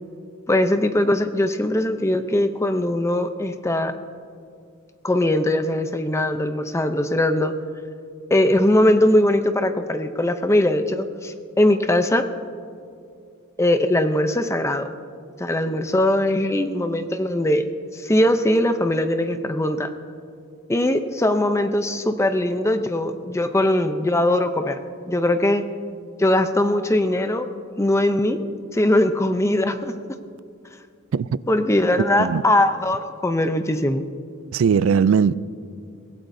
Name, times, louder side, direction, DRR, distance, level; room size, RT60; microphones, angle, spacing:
voice 1, 0.5-3.9 5.0-7.5 8.3-12.2 13.6-14.9 15.4-17.7 17.9-19.9 20.7-24.8 25.1-25.6 26.2-27.5 27.8-28.4 28.7-29.9 31.5-34.0, left 1 dB, 15° left, 0.5 m, -20 dB
voice 2, 34.5-35.3, right 6 dB, 75° right, 0.4 m, -18 dB
24.0 x 17.0 x 2.7 m
head